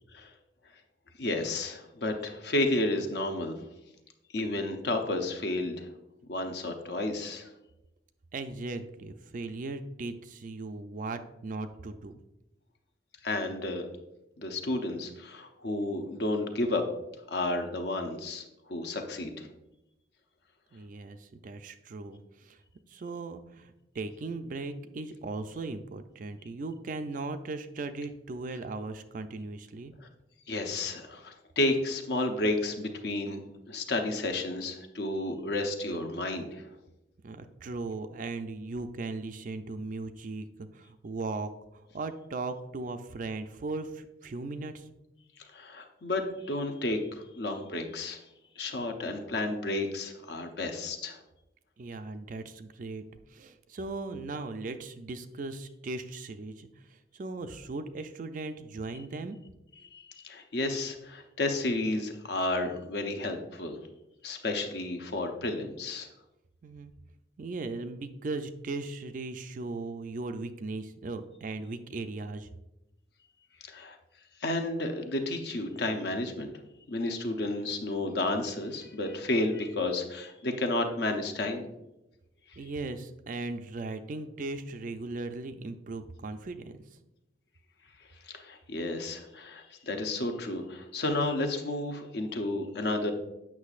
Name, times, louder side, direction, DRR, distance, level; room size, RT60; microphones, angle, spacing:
voice 1, 1.2-3.6 4.3-5.9 6.3-7.5 13.2-13.9 14.4-16.8 17.3-18.4 18.7-19.5 30.5-36.6 45.4-47.0 47.3-48.2 48.6-51.2 59.9-63.8 64.2-66.1 73.6-74.0 74.4-76.5 76.9-81.6 88.3-93.1, left 2 dB, 60° left, 5 dB, 0.7 m, -31 dB
voice 2, 8.3-12.2 20.7-22.6 22.9-29.9 37.2-44.9 51.8-53.0 53.3-59.4 66.6-66.9 67.4-72.5 82.6-86.8, right 3 dB, 40° right, 9 dB, 0.4 m, -38 dB
8.3 x 6.0 x 2.4 m, 0.93 s
head